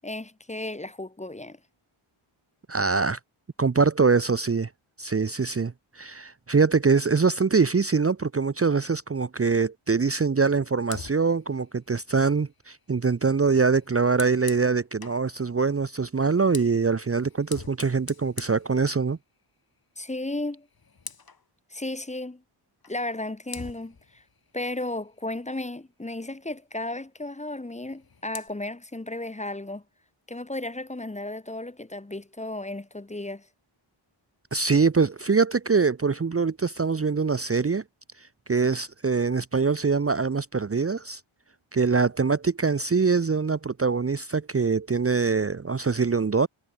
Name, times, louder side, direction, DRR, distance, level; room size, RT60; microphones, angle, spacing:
voice 1, 0.0-1.6 20.0-20.7 21.7-22.4 22.9-24.2 24.5-29.8 30.3-33.5, left 2 dB, 15° left, 1.4 m, -34 dB
voice 2, 2.7-3.2 3.6-4.7 5.0-19.2 34.5-37.8 38.2-41.2 41.7-46.5, right 4 dB, 30° right, 0.9 m, -24 dB
Fire, 10.8-15.3 16.2-19.4 19.8-20.1 20.4-21.5 22.8-23.0 23.5-25.8 27.7-28.5, left 5 dB, 45° left, 5.3 m, -45 dB
wide cardioid pair, 155°, 50 cm